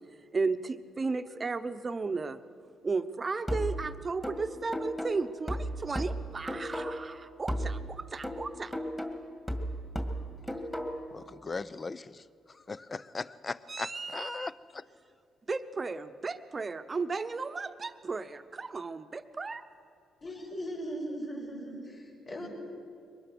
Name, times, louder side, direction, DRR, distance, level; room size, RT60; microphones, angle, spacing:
voice 1, 0.3-2.4 2.8-8.7 13.7-14.5 15.5-19.6, right 4 dB, 30° right, 10 dB, 0.9 m, -34 dB
sound 1, 3.5-7.2 7.5-11.2, equal, 10° left, 2.1 m, -35 dB
voice 2, 11.1-14.8, left 3 dB, 30° left, 16 dB, 0.6 m, -39 dB
voice 3, 20.2-22.5, equal, 45° left, -4 dB, 6.2 m, -38 dB
23.0 x 20.0 x 6.2 m, 2.4 s
cardioid pair, 90°, 0 cm